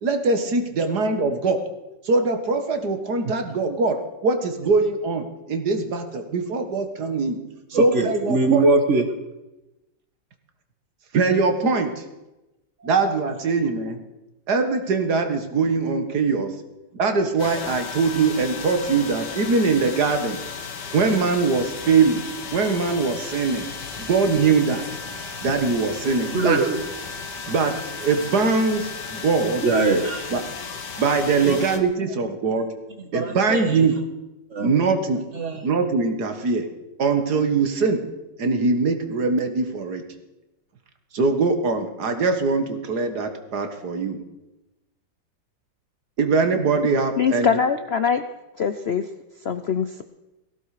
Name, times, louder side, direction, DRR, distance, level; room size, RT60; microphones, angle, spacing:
voice 1, 0.0-1.6 2.0-7.4 7.7-8.7 11.1-12.0 12.8-14.0 14.5-16.5 16.9-20.4 20.9-22.3 22.5-23.7 24.0-24.8 25.4-26.6 27.5-29.6 30.3-30.4 31.0-32.7 33.1-34.0 34.6-35.2 35.6-36.7 37.0-38.1 38.4-40.0 41.1-44.2 46.2-47.6, right 4 dB, 60° right, 7 dB, 2.1 m, -22 dB
voice 2, 7.7-9.0 26.3-26.8 29.4-30.3 31.4-31.6 33.0-33.9 34.5-34.7 35.3-35.6, right 3 dB, 40° right, 6 dB, 1.8 m, -22 dB
sound 1, 17.4-31.8, left 5 dB, 65° left, 2.1 m, -35 dB
voice 3, 47.2-48.2 48.6-49.0 49.4-50.0, left 7 dB, 85° left, 10 dB, 0.5 m, -22 dB
18.5 x 16.0 x 4.9 m, 0.99 s
omnidirectional pair, 2.1 m